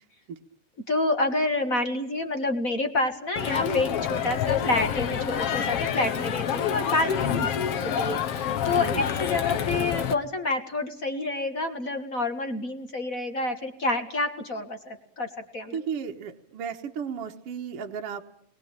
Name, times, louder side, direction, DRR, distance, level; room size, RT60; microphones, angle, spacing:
voice 1, 0.9-7.4 7.8-15.8, left 2 dB, 35° left, 6 dB, 1.5 m, -28 dB
Crowd, 3.4-10.1, left 8 dB, 60° left, 2.1 m, -27 dB
voice 2, 7.3-7.6 8.8-9.0 15.7-18.2, right 7 dB, 60° right, 3 dB, 2.1 m, -34 dB
28.5 x 21.5 x 8.9 m, 0.70 s
omnidirectional pair, 3.4 m